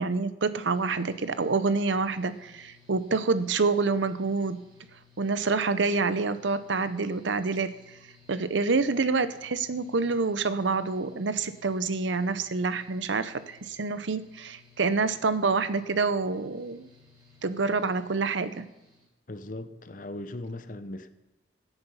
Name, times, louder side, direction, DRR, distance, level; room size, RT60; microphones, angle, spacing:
voice 1, 0.0-4.6 5.2-7.7 8.3-16.9 17.4-18.7, right 4 dB, 90° right, 13 dB, 0.7 m, -27 dB
Mechanical fan, 0.6-19.1, left 4 dB, 25° right, 5.5 m, -59 dB
voice 2, 19.3-21.1, left 1 dB, 45° left, 11 dB, 0.8 m, -38 dB
16.0 x 8.1 x 5.6 m, 0.98 s
head